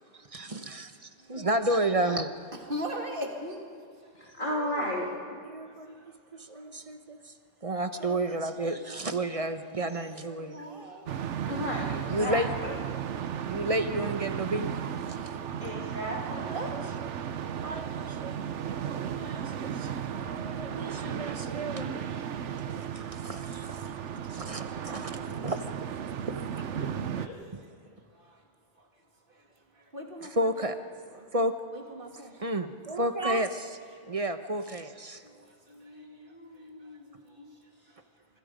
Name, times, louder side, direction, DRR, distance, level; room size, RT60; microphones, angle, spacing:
voice 1, 0.1-2.3 5.4-5.9 6.3-7.3 7.6-11.2 12.0-12.8 13.5-14.8 15.2-15.4 15.6-15.7 16.4-17.1 17.6-18.4 19.0-22.3 22.8-23.9 24.2-25.8 26.3-26.7 27.5-27.6 30.2-30.8 31.3-31.6 32.4-33.8 34.1-35.2, right 1 dB, 30° right, 8 dB, 1.1 m, -32 dB
voice 2, 2.7-3.6 4.5-4.9 10.5-11.0 14.8-15.6 16.5-16.7 29.9-30.5 31.2-31.3 31.7-32.3 35.4-35.5, equal, 45° right, 1 dB, 2.9 m, -38 dB
voice 3, 4.1-5.4 11.5-12.7 15.6-16.5 26.8-27.4 35.2-35.4 35.7-37.5, equal, 45° left, -3 dB, 2.5 m, -36 dB
sound 1, 11.1-27.3, right 8 dB, 75° right, 1.2 m, -35 dB
26.5 x 24.5 x 5.2 m, 2.2 s
omnidirectional pair, 1.2 m